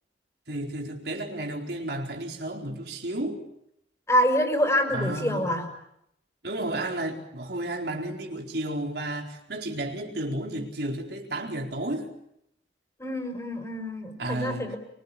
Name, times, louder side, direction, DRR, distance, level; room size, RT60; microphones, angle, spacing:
voice 1, 0.5-3.4 4.9-5.5 6.4-12.1 14.2-14.7, right 1 dB, 65° right, 4.4 m, -32 dB
voice 2, 4.1-5.7 13.0-14.8, equal, 15° left, 5.9 m, -26 dB
27.5 x 24.0 x 8.6 m
head